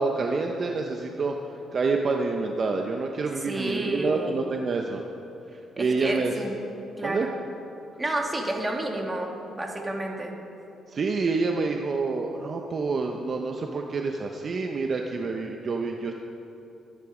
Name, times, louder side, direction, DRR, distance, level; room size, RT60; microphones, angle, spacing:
voice 1, 0.0-5.0 5.8-6.3 7.0-7.3 10.9-16.1, right 4 dB, 45° right, 2 dB, 1.0 m, -27 dB
voice 2, 3.5-4.3 5.8-6.6 7.0-7.3 8.0-10.4, right 1 dB, 20° right, 0 dB, 2.6 m, -30 dB
22.5 x 10.5 x 5.2 m, 2.8 s
cardioid pair, 90°, 0 cm